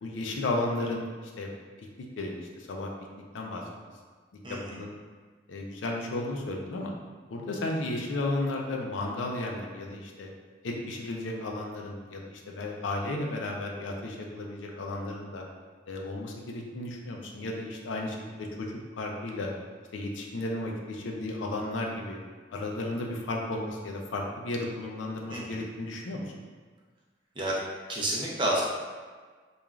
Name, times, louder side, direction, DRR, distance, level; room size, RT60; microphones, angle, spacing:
voice 1, 0.0-1.1 1.4-1.5 2.2-2.9 3.3-3.6 4.5-4.9 5.5-6.9 7.3-10.3 10.6-12.2 12.5-15.4 15.9-19.5 19.9-22.2 22.5-26.2, left 2 dB, 85° left, 0 dB, 0.4 m, -33 dB
voice 2, 4.4-4.8 25.3-25.6 27.4-27.6 27.9-28.6, right 1 dB, 25° right, -5 dB, 0.5 m, -30 dB
3.0 x 2.4 x 2.4 m, 1.5 s
head